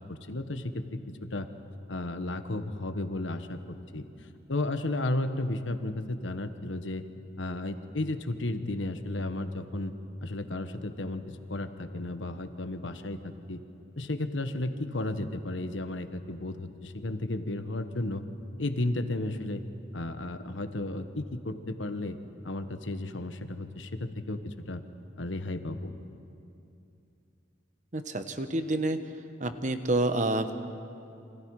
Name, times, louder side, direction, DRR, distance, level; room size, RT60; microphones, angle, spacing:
voice 1, 0.0-1.5 1.9-4.0 4.5-7.0 7.4-9.9 10.2-13.6 14.0-18.2 18.6-19.6 19.9-22.2 22.4-24.8 25.2-25.9, left 2 dB, 80° left, 9 dB, 1.3 m, -33 dB
voice 2, 27.9-29.0 29.4-30.6, right 2 dB, 40° right, 8 dB, 1.1 m, -28 dB
28.5 x 25.5 x 4.8 m, 2.7 s
head